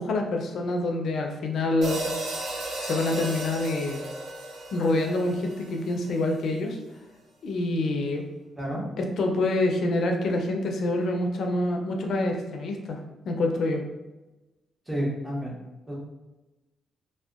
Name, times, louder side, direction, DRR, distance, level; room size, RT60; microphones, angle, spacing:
voice 1, 0.0-2.0 2.8-4.0 4.7-6.8 7.4-8.2 9.0-13.0 13.3-13.8, left 2 dB, 60° left, 3 dB, 0.4 m, -26 dB
sound 1, 1.8-6.2, right 1 dB, 60° right, 0.5 m, -34 dB
voice 2, 14.9-15.5 15.9-16.0, equal, 10° right, -4 dB, 0.6 m, -30 dB
2.6 x 2.1 x 2.3 m, 1.1 s
cardioid pair, 160°, 0 cm